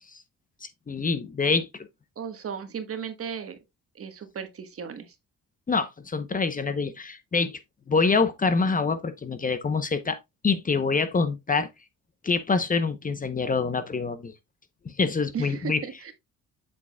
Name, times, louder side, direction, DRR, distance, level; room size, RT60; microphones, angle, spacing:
voice 1, 0.6-1.7 5.7-7.6 7.9-10.2 10.4-11.7 12.2-14.3 14.8-15.8, left 4 dB, 25° left, 0.8 m, -25 dB
voice 2, 2.2-3.6 3.9-5.1 15.3-16.1, right 7 dB, 50° right, 1.3 m, -35 dB
7.7 x 6.1 x 2.2 m
cardioid pair, 90°, 30 cm